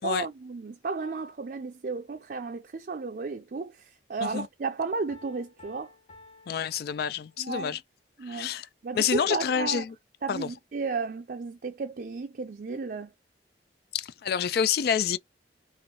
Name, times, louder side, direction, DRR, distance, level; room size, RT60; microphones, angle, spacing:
voice 1, 0.0-5.9 7.4-7.8 8.2-8.5 8.8-9.8 10.2-13.1, right 4 dB, 50° right, 0.5 m, -33 dB
Piano, 5.1-7.7, left 2 dB, 40° left, 2.5 m, -54 dB
voice 2, 6.5-7.8 8.3-8.7 8.9-9.9 10.3-10.5 13.9-15.2, left 8 dB, 60° left, 0.3 m, -28 dB
3.9 x 2.5 x 3.1 m
head